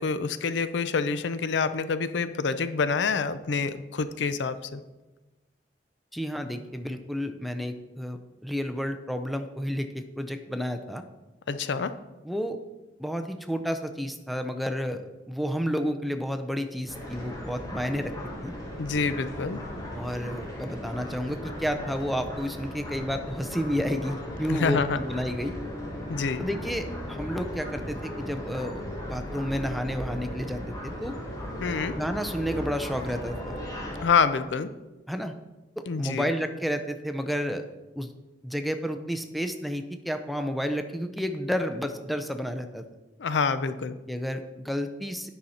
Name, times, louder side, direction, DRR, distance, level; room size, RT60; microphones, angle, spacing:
voice 1, 0.0-4.8 11.5-11.9 18.8-19.6 24.5-25.0 26.1-26.4 31.6-31.9 33.9-34.7 35.9-36.3 43.2-43.9, left 5 dB, 75° left, 12 dB, 0.5 m, -27 dB
voice 2, 6.1-11.0 12.2-12.6 13.0-18.1 18.4-18.5 19.9-25.5 26.4-28.8 29.1-31.1 31.9-33.6 35.1-35.3 35.8-37.6 38.0-38.1 38.4-42.8 44.1-45.3, equal, ahead, 7 dB, 0.5 m, -31 dB
sound 1, 16.9-34.1, equal, 20° left, 1.6 m, -37 dB
9.2 x 5.6 x 4.2 m, 1.1 s
head